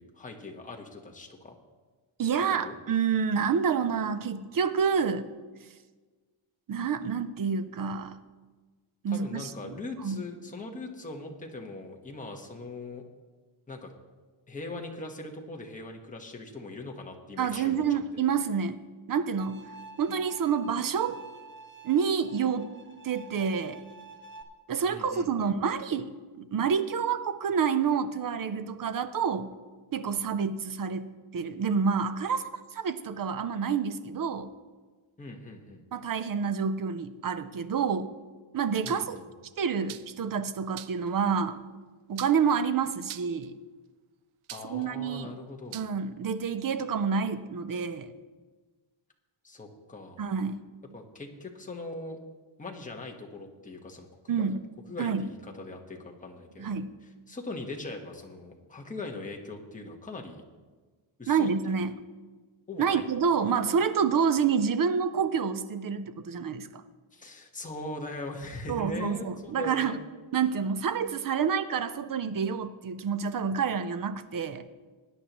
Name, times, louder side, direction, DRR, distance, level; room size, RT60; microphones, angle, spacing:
voice 1, 0.0-1.6 2.6-2.8 9.1-13.0 13.7-13.9 14.5-18.2 24.9-25.5 35.2-35.8 38.8-39.2 44.5-45.8 49.4-50.2 50.9-52.2 52.6-54.5 54.9-56.8 57.0-60.4 61.2-61.8 62.7-63.1 67.1-70.0, left 2 dB, 15° left, 1 dB, 1.2 m, -41 dB
voice 2, 2.2-5.3 6.7-8.2 9.0-9.7 10.0-10.2 17.4-18.8 19.1-19.6 20.0-21.2 21.8-22.7 23.0-23.8 24.7-26.1 26.4-29.5 29.9-34.5 35.9-38.1 38.5-39.2 39.6-41.6 42.1-43.5 44.7-45.3 45.7-48.1 50.2-50.6 54.3-54.6 55.0-55.3 56.6-56.9 61.3-62.0 62.8-66.8 68.7-69.9 70.3-74.6, right 6 dB, 45° right, 11 dB, 0.6 m, -28 dB
Bowed string instrument, 19.4-24.4, right 3 dB, 25° right, 1.0 m, -49 dB
sound 1, 38.9-39.2 39.9-40.2 40.8-41.1 42.2-42.6 43.1-43.5 44.5-44.9 45.7-45.9, right 13 dB, 90° right, 0.6 m, -42 dB
20.0 x 9.8 x 3.0 m, 1.4 s
wide cardioid pair, 175°, 49 cm